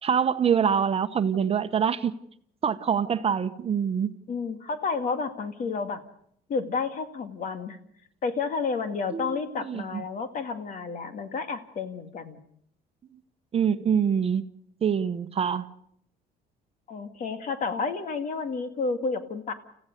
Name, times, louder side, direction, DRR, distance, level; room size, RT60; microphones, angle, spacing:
voice 1, 0.0-2.1 2.6-4.1 9.1-10.0 13.5-14.4 14.8-15.7, right 7 dB, 35° right, 10 dB, 1.0 m, -25 dB
voice 2, 4.3-6.0 6.5-7.8 8.2-12.4 16.9-19.5, left 4 dB, 50° left, 9 dB, 2.1 m, -31 dB
29.5 x 15.5 x 6.7 m, 0.69 s
cardioid pair, 110°, 17 cm